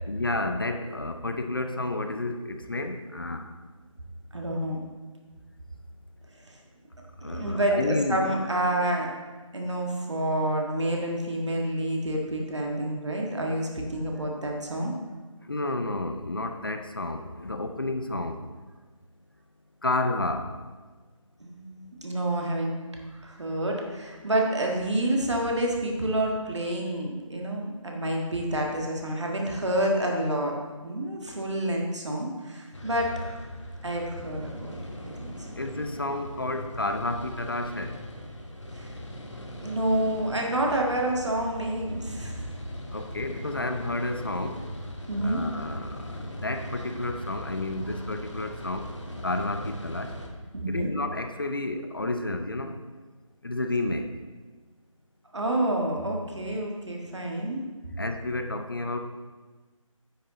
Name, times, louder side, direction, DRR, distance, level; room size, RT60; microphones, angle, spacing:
voice 1, 0.0-3.5 7.2-8.3 15.5-18.4 19.8-20.5 35.6-38.0 42.9-44.6 45.2-48.9 49.2-50.1 50.7-52.8 53.4-54.1 58.0-59.0, left 2 dB, 40° left, 6 dB, 0.6 m, -31 dB
voice 2, 4.3-4.8 7.2-9.1 9.5-14.9 21.4-22.7 23.1-30.5 30.8-33.1 33.8-34.8 35.2-35.3 38.7-38.9 39.6-42.4 45.1-45.4 50.5-50.9 55.3-57.6, right 1 dB, 55° right, 0 dB, 1.7 m, -28 dB
sound 1, 32.7-50.3, left 1 dB, 60° left, 1.3 m, -40 dB
9.3 x 6.4 x 3.9 m, 1.3 s
figure-of-eight pair, 160°, 17 cm